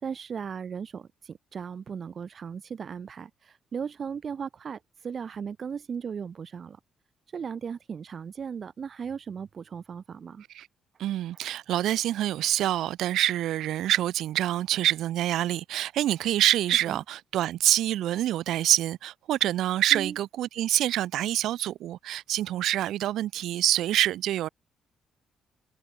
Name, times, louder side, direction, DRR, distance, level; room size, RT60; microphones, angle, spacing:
voice 1, 0.0-6.8 7.3-10.4 16.9-17.0 19.9-20.2, right 6 dB, 50° right, 2.1 m, -37 dB
voice 2, 11.0-24.5, right 13 dB, 80° right, 0.7 m, -26 dB
cardioid pair, 90°, 0 cm